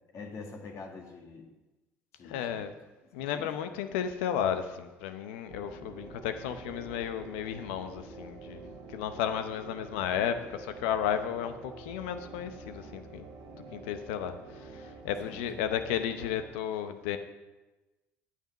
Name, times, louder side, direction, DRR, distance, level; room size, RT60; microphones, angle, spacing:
voice 1, 0.1-1.5 2.1-2.7 3.1-3.5 15.1-15.5, left 4 dB, 55° left, 1 dB, 2.0 m, -45 dB
voice 2, 2.2-2.7 3.1-13.3 13.7-17.2, left 9 dB, 80° left, 9 dB, 0.8 m, -33 dB
sound 1, 5.5-16.5, right 3 dB, 60° right, 1.7 m, -47 dB
9.5 x 8.8 x 5.4 m, 1.1 s
hypercardioid pair, 65°, 6 cm